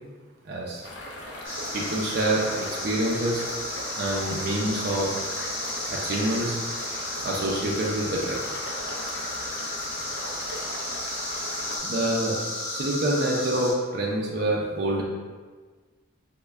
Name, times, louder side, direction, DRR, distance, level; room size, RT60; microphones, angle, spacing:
voice 1, 0.5-0.9 1.7-3.5 4.0-5.1 5.9-6.6 7.2-8.4 11.8-12.4 12.7-15.0, right 1 dB, 50° right, -3 dB, 0.4 m, -26 dB
sound 1, 0.8-11.8, left 1 dB, 60° left, 0.5 m, -38 dB
sound 2, 1.4-13.7, left 1 dB, 15° left, 1.3 m, -33 dB
3.2 x 2.1 x 3.4 m, 1.4 s
head